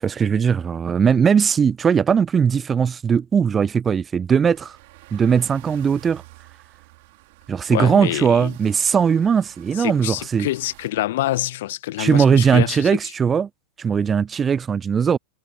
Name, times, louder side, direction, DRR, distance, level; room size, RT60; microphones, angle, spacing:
voice 1, 0.0-4.8 5.1-6.2 7.5-10.5 12.0-13.5 13.8-15.2, right 7 dB, 20° right, 0.5 m, -19 dB
sound 1, 4.4-10.9, right 23 dB, 50° right, 4.0 m, -48 dB
voice 2, 7.7-8.5 9.8-12.9, left 15 dB, 55° left, 1.6 m, -26 dB
figure-of-eight pair, 90°, 0 cm